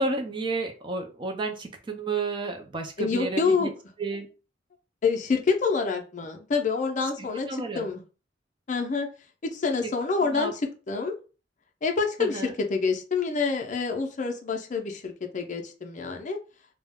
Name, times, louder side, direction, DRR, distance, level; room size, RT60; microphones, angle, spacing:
voice 1, 0.0-3.7 4.0-4.3 7.2-7.9 9.8-9.9 10.2-10.5 12.2-12.6, right 3 dB, 25° right, 4 dB, 0.4 m, -31 dB
voice 2, 3.0-3.7 5.0-7.5 7.7-8.0 8.7-9.1 9.4-10.6 10.9-11.2 11.8-16.4, left 4 dB, 45° left, 4 dB, 0.4 m, -27 dB
2.3 x 2.0 x 3.4 m, 0.34 s
head